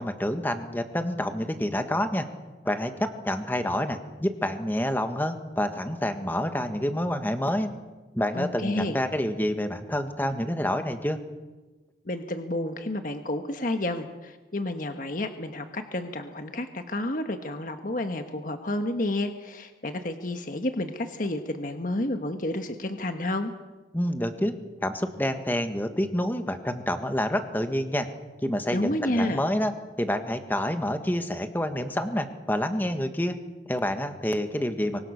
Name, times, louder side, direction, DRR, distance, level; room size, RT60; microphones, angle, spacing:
voice 1, 0.0-2.3 2.6-7.7 8.1-11.2 23.9-24.5 24.8-28.1 28.4-29.7 30.0-33.4 33.7-35.0, left 1 dB, 10° left, 7 dB, 1.6 m, -28 dB
voice 2, 8.3-9.0 12.0-23.5 28.7-29.4, left 1 dB, 50° left, 6 dB, 1.4 m, -30 dB
24.5 x 24.0 x 6.6 m, 1.2 s
head